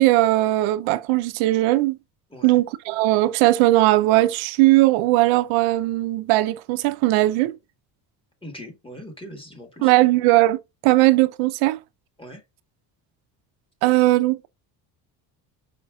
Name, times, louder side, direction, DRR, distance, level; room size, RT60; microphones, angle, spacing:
voice 1, 0.0-2.0 2.4-7.6 9.8-10.6 10.8-11.8 13.8-14.5, right 17 dB, 85° right, 0.7 m, -18 dB
voice 2, 2.3-2.6 8.4-9.9 12.2-12.4, equal, 10° left, 1.4 m, -40 dB
5.2 x 3.9 x 2.3 m
cardioid pair, 115°, 46 cm